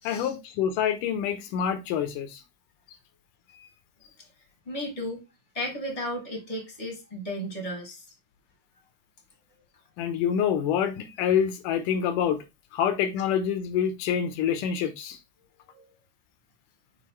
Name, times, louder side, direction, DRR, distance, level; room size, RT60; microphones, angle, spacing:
voice 1, 0.0-2.4 10.0-12.4 12.7-15.2, left 8 dB, 80° left, 2.5 m, -26 dB
voice 2, 4.7-5.2 5.5-8.0 15.7-15.9, equal, 15° left, 1.1 m, -34 dB
6.7 x 4.7 x 3.1 m
omnidirectional pair, 3.8 m